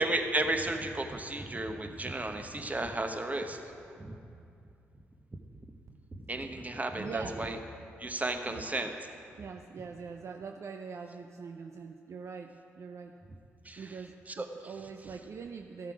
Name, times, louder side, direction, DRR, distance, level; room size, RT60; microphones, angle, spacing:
voice 1, 0.0-3.6 4.0-4.2 6.2-7.6 8.0-8.9 13.6-14.0 14.3-14.5, right 2 dB, 25° right, 5 dB, 1.1 m, -33 dB
voice 2, 7.0-7.5 8.5-8.6 9.4-13.1 13.8-15.9, right 5 dB, 55° right, 4 dB, 0.5 m, -43 dB
13.5 x 7.2 x 4.9 m, 2.5 s
hypercardioid pair, 40°, 6 cm